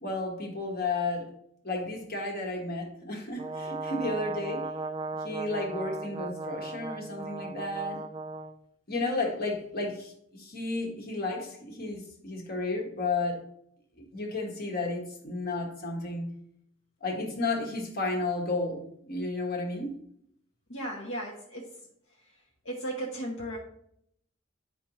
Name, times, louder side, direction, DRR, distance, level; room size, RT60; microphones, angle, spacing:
voice 1, 0.0-1.3 1.6-4.7 5.2-8.0 8.9-13.4 14.0-16.3 17.0-19.9, left 2 dB, 50° left, 0 dB, 1.4 m, -32 dB
Brass instrument, 3.4-8.6, right 3 dB, 20° right, 0.3 m, -36 dB
voice 2, 20.7-21.8 22.2-23.6, right 1 dB, 70° left, -1 dB, 1.0 m, -36 dB
9.0 x 5.1 x 3.0 m, 0.72 s
head